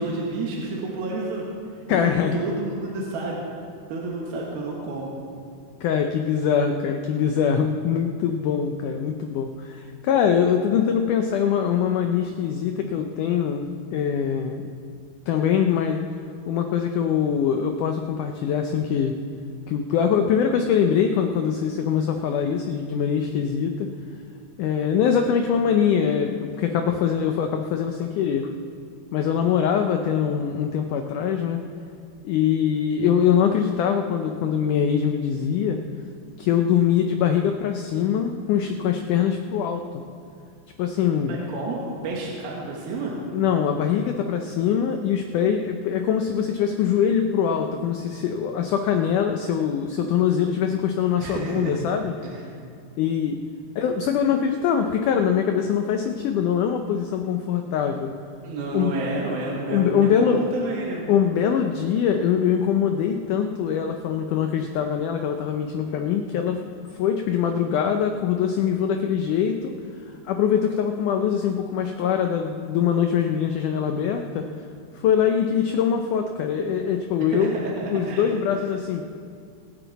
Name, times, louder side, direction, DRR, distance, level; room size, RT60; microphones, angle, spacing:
voice 1, 0.0-1.4 1.9-3.4 3.9-5.1 41.3-43.2 51.2-51.7 52.2-52.4 58.4-61.1 77.2-78.2, right 3 dB, 75° right, -3 dB, 3.3 m, -30 dB
voice 2, 1.9-2.6 5.8-14.7 15.3-16.0 16.5-19.1 19.7-23.9 24.6-28.5 29.1-31.6 32.2-35.8 36.4-39.9 40.8-41.4 43.3-52.1 53.0-53.4 53.8-58.1 58.7-58.9 59.7-60.4 61.1-66.6 67.0-69.7 70.3-74.5 75.0-77.5 77.9-79.0, left 8 dB, 85° left, 5 dB, 1.8 m, -23 dB
26.5 x 9.2 x 4.1 m, 2.3 s
omnidirectional pair, 4.5 m